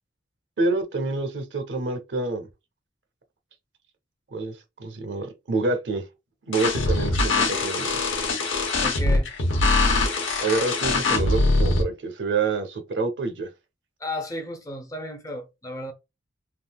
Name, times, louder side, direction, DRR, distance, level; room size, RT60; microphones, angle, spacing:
voice 1, 0.6-2.5 4.3-4.5 4.8-6.0 6.5-7.9 10.4-13.5, right 3 dB, 60° right, 0.6 m, -27 dB
sound 1, 6.5-11.8, left 2 dB, 80° left, 0.8 m, -22 dB
voice 2, 8.8-9.3 14.0-15.9, left 1 dB, 20° left, 0.5 m, -34 dB
3.6 x 2.4 x 2.2 m
head